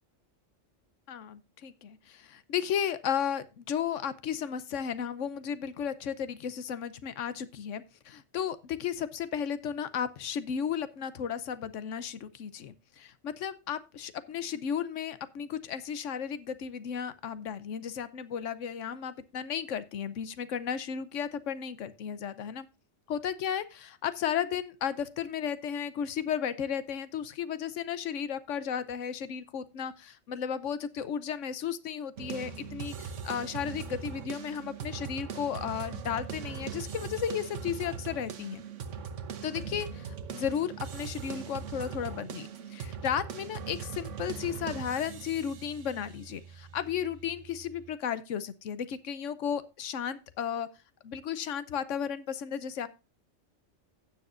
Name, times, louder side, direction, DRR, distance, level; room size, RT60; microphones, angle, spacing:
voice 1, 1.1-22.7 23.1-38.6 39.4-50.7 51.0-52.9, left 8 dB, 80° left, 1.1 m, -34 dB
sound 1, 32.2-47.9, right 7 dB, 80° right, 1.3 m, -40 dB
16.0 x 7.0 x 2.5 m
omnidirectional pair, 1.2 m